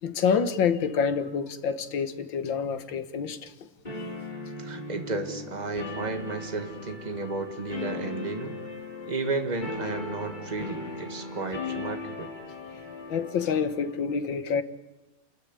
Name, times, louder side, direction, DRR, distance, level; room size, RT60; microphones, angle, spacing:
voice 1, 0.0-3.5 13.1-14.6, left 6 dB, 80° left, 2.0 m, -27 dB
sound 1, 3.8-13.9, left 3 dB, 25° left, 4.2 m, -38 dB
voice 2, 4.6-8.6 9.0-12.3, right 3 dB, 20° right, 1.9 m, -33 dB
29.0 x 14.0 x 9.9 m
omnidirectional pair, 2.1 m